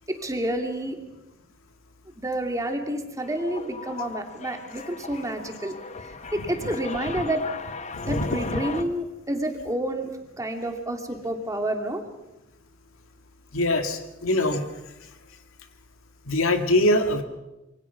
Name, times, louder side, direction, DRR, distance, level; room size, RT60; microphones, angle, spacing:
voice 1, 0.1-1.0 2.2-7.5 8.1-12.0, right 1 dB, 15° right, 4 dB, 2.5 m, -29 dB
sound 1, 3.2-8.8, left 4 dB, 35° left, 1.2 m, -37 dB
voice 2, 7.9-8.6 13.5-14.6 16.3-17.2, left 1 dB, 75° left, 6 dB, 2.3 m, -23 dB
26.5 x 23.5 x 5.9 m, 0.96 s
head